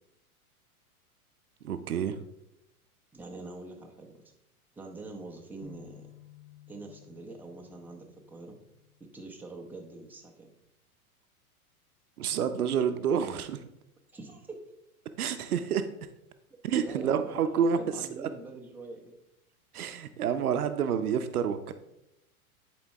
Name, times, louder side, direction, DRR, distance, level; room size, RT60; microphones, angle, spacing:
voice 1, 1.6-2.2 12.2-13.6 15.2-15.9 16.6-18.3 19.7-21.7, right 7 dB, 75° right, 10 dB, 0.7 m, -29 dB
voice 2, 3.1-4.2 4.8-6.1 6.7-8.6 9.1-10.5 14.1-14.6 16.7-19.1, right 3 dB, 5° right, 0 dB, 0.9 m, -45 dB
sound 1, 5.6-9.6, left 10 dB, 80° left, 1.3 m, -55 dB
10.5 x 4.5 x 3.4 m, 0.85 s
hypercardioid pair, 100°, 44 cm